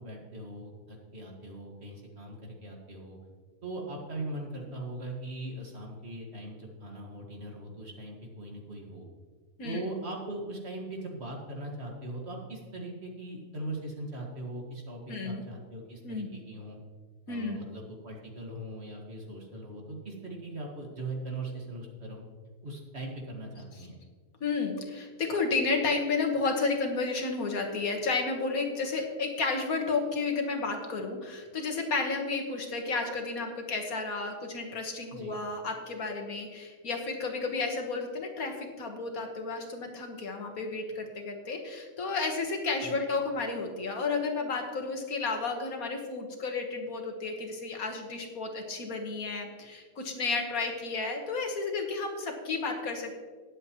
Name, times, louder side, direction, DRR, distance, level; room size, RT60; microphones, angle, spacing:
voice 1, 0.0-3.2 3.6-9.1 9.6-16.8 17.3-22.2 22.6-23.9 35.1-35.4 42.8-43.0, right 2 dB, 50° right, 0 dB, 2.2 m, -40 dB
voice 2, 15.1-15.4 16.0-16.3 17.3-17.6 24.4-53.1, left 4 dB, 90° left, 3 dB, 2.0 m, -32 dB
19.5 x 7.8 x 3.1 m, 1.5 s
omnidirectional pair, 1.5 m